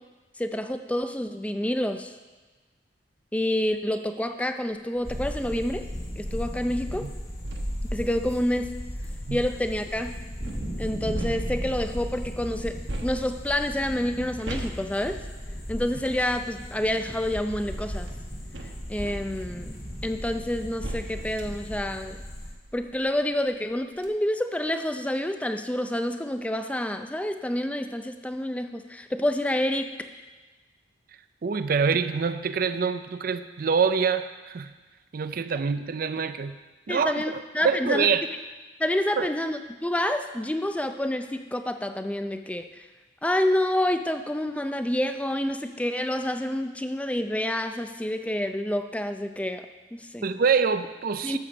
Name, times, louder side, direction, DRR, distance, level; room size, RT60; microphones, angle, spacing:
voice 1, 0.4-2.1 3.3-5.8 6.2-7.1 7.8-8.7 9.3-10.2 10.8-12.8 13.0-15.2 15.7-18.1 18.9-19.7 20.0-22.2 22.7-29.9 36.9-38.1 38.8-42.9 43.2-49.7 49.9-50.3 51.2-51.4, left 1 dB, 10° left, 7 dB, 0.4 m, -28 dB
sound 1, 5.0-22.5, equal, 30° left, 1.8 m, -36 dB
sound 2, 5.0-5.3 5.8-9.8 10.4-12.0 12.9-16.2 17.2-23.1 23.5-23.6 23.9-24.1, right 1 dB, 85° right, 1.2 m, -40 dB
voice 2, 31.4-34.7 35.1-36.6 36.9-37.4 37.6-38.2 39.2-39.3 50.2-51.4, right 6 dB, 50° right, 12 dB, 0.4 m, -25 dB
12.5 x 5.0 x 7.1 m, 1.3 s
head